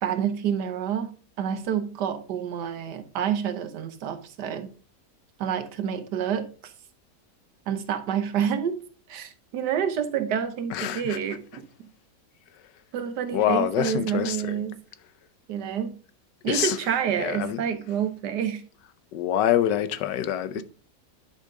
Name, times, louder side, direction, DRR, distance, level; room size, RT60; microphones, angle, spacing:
voice 1, 0.0-4.7 5.4-6.7 7.7-8.8 9.1-11.6 12.9-14.8 15.5-16.0 16.4-18.6 20.6-20.7, right 8 dB, 75° right, 1.5 m, -28 dB
voice 2, 10.7-11.2 13.3-14.5 16.5-16.8 17.2-17.6 19.1-20.6, left 11 dB, 90° left, 1.4 m, -25 dB
10.5 x 5.5 x 3.7 m
omnidirectional pair, 1.8 m